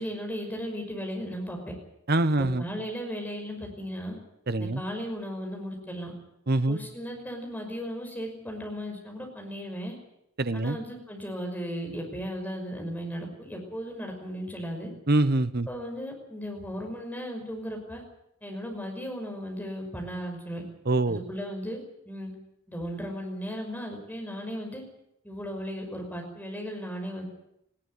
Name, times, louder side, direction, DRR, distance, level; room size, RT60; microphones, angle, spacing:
voice 1, 0.0-1.7 2.6-4.1 4.6-6.1 6.7-10.0 10.5-14.9 15.7-18.0 18.4-20.6 21.1-22.3 22.7-24.8 25.2-27.2, equal, 10° left, 2 dB, 5.7 m, -36 dB
voice 2, 2.1-2.6 4.5-4.8 6.5-6.8 10.4-10.8 15.1-15.7 20.8-21.2, right 2 dB, 50° right, 13 dB, 1.1 m, -24 dB
19.5 x 17.0 x 9.8 m, 0.78 s
head